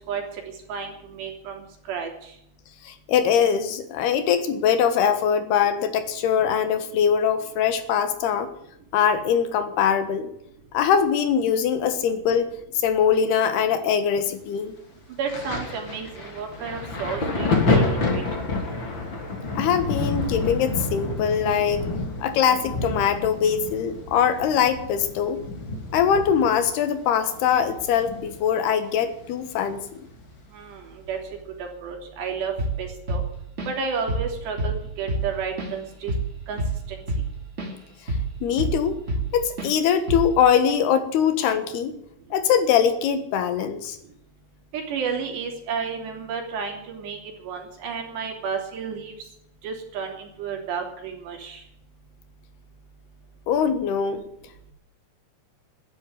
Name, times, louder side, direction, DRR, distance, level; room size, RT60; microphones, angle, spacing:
voice 1, 0.7-1.6 1.9-2.1 15.2-18.2 30.5-30.8 31.1-31.2 31.6-32.5 32.8-33.2 33.6-36.1 36.5-36.6 36.9-37.0 44.7-47.2 47.4-49.2 49.6-51.6, right 6 dB, 80° right, 2 dB, 5.4 m, -31 dB
voice 2, 2.8-8.5 8.9-10.3 10.7-14.7 19.5-21.9 22.2-25.4 25.9-29.8 38.4-39.0 39.3-41.9 42.3-44.0 53.5-54.3, left 8 dB, 75° left, 11 dB, 3.3 m, -22 dB
Thunder, 15.3-28.6 28.9-30.2 31.1-31.2, left 3 dB, 30° left, 2.9 m, -29 dB
Drum kit / Drum, 32.6-32.8 33.1-33.8 34.1-34.3 34.6-37.7 38.1-39.3 39.6-39.8 40.1-40.4, right 2 dB, 20° right, 2.3 m, -27 dB
13.0 x 11.0 x 9.8 m, 0.76 s
omnidirectional pair, 4.8 m